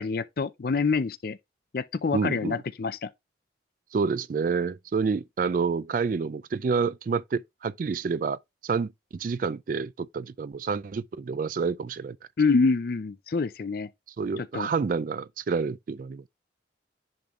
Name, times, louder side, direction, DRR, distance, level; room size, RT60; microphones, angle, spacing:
voice 1, 0.0-1.4 1.7-3.1 12.4-13.9 14.4-14.7, left 4 dB, 50° left, 0.5 m, -26 dB
voice 2, 2.1-2.6 3.9-12.2 14.2-16.3, right 5 dB, 45° right, 0.3 m, -28 dB
10.5 x 3.8 x 3.0 m
head